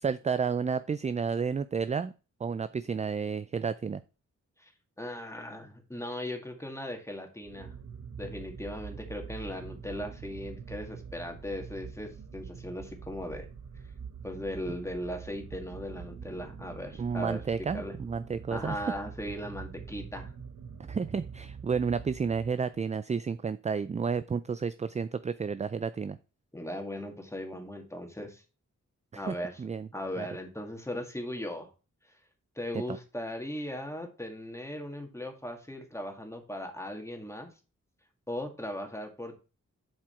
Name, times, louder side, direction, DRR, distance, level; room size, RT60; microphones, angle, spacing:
voice 1, 0.0-2.1 2.4-4.0 17.0-18.8 20.9-26.2 29.1-29.9 30.2-30.3 32.7-33.0, right 5 dB, 25° right, 14 dB, 0.3 m, -31 dB
voice 2, 5.0-7.7 8.2-13.5 14.2-17.4 17.7-17.9 18.5-20.3 26.5-28.4 29.2-29.6 29.9-31.7 32.6-37.5 38.3-39.4, left 1 dB, 10° left, 4 dB, 2.0 m, -38 dB
sound 1, 7.4-22.8, right 6 dB, 80° right, 1.0 m, -45 dB
7.3 x 4.8 x 4.4 m, 0.33 s
cardioid pair, 50°, 31 cm